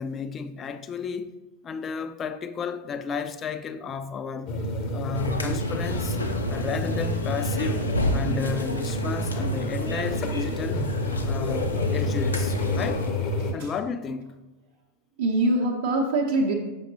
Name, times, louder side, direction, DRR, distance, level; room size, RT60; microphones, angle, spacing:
voice 1, 0.0-1.3 1.6-4.6 4.9-6.2 6.5-7.9 8.1-10.9 11.2-13.1 13.5-14.4, left 5 dB, 25° left, 0.3 m, -33 dB
sound 1, 4.5-13.5, left 1 dB, 40° left, 0.7 m, -29 dB
sound 2, 5.1-13.1, left 1 dB, 75° left, 0.6 m, -31 dB
voice 2, 13.4-13.7 15.2-16.5, right 2 dB, 60° right, 0.7 m, -24 dB
6.9 x 5.8 x 2.8 m
figure-of-eight pair, 90°, 0 cm